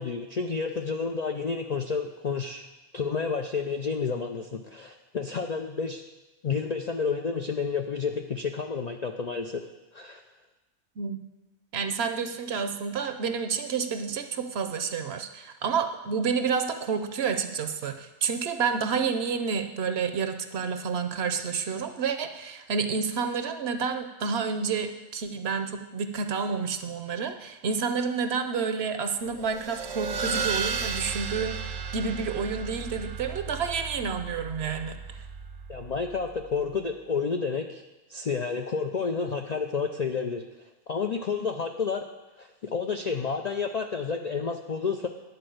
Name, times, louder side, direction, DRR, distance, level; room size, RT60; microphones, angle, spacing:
voice 1, 0.0-2.7 2.9-6.0 6.4-9.6 9.9-10.2 35.7-37.8 38.1-40.4 40.9-42.1 42.4-45.1, left 5 dB, 60° left, 4 dB, 0.4 m, -30 dB
voice 2, 11.7-31.7 31.9-35.2, right 5 dB, 60° right, 8 dB, 0.8 m, -29 dB
sound 1, 29.4-36.4, right 5 dB, 85° right, 1.1 m, -34 dB
10.5 x 4.3 x 7.7 m, 1.1 s
omnidirectional pair, 1.3 m